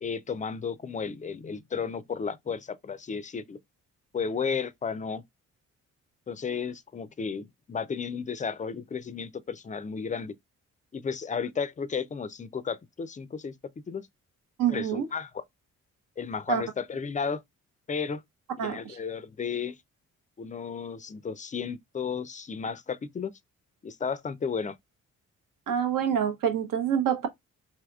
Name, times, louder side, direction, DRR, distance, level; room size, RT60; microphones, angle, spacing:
voice 1, 0.0-3.6 4.1-5.2 6.3-10.3 10.9-13.5 13.9-14.1 14.7-15.4 16.2-17.4 17.9-18.2 18.6-19.8 20.4-23.3 23.8-24.8, left 6 dB, 25° left, 0.4 m, -33 dB
voice 2, 14.6-15.1 16.5-16.6 18.6-19.0 25.7-27.3, right 8 dB, 70° right, 0.8 m, -26 dB
3.4 x 2.7 x 2.3 m
supercardioid pair, 55°, 34 cm